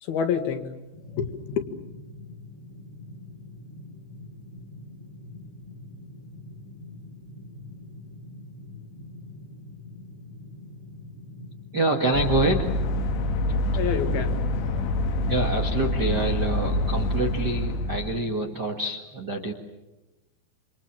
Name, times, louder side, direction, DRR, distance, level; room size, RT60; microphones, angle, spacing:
voice 1, 0.0-0.7 1.1-1.7 13.8-14.9, left 7 dB, 60° left, 7 dB, 3.5 m, -28 dB
sound 1, 0.9-18.6, left 2 dB, 25° left, 2.8 m, -44 dB
voice 2, 11.7-12.9 15.3-19.5, right 2 dB, 55° right, 2 dB, 1.1 m, -26 dB
sound 2, 12.1-18.2, left 1 dB, 80° left, 3.8 m, -26 dB
28.5 x 27.0 x 7.6 m, 1.0 s
omnidirectional pair, 5.3 m